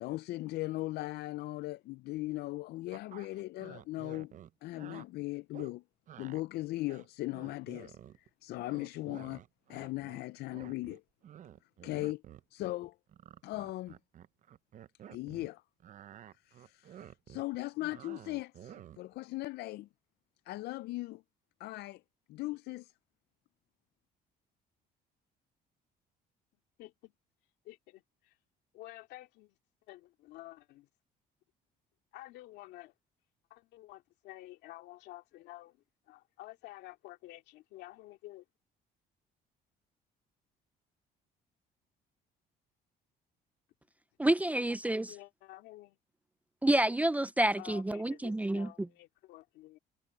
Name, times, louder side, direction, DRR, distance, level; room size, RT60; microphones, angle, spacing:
voice 1, 0.0-4.3 4.6-5.8 6.2-8.0 8.4-9.4 9.7-11.0 11.8-12.2 12.5-12.9 13.4-14.0 15.1-15.6 16.4-19.9 20.5-21.2 21.6-22.0 22.3-22.9, left 18 dB, 75° left, 0.4 m, -38 dB
sound 1, 2.9-5.1 5.5-5.7 6.1-6.4 6.8-8.3 8.6-10.2 10.5-15.5 15.8-19.1, right 10 dB, 50° right, 0.7 m, -51 dB
voice 2, 26.8-27.1 27.6-28.4 28.7-29.6 29.9-30.9 32.1-32.9 33.5-38.5 45.1-46.0 47.6-49.8, left 17 dB, 90° left, 2.4 m, -51 dB
voice 3, 44.2-45.1 46.6-48.7, right 1 dB, 10° right, 0.4 m, -28 dB
cardioid pair, 110°, 17 cm